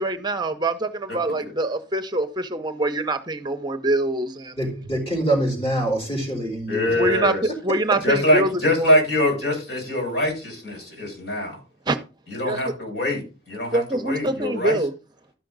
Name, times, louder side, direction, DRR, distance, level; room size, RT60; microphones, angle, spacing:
voice 1, 0.0-4.6 6.9-9.0 11.9-12.0 12.4-12.6 13.7-14.9, right 2 dB, 25° right, 0.6 m, -24 dB
voice 2, 4.6-7.2, right 1 dB, 30° left, 4.4 m, -25 dB
voice 3, 6.7-7.4 8.0-11.6 12.3-14.8, left 1 dB, 80° left, 6.2 m, -23 dB
13.0 x 5.7 x 3.9 m
head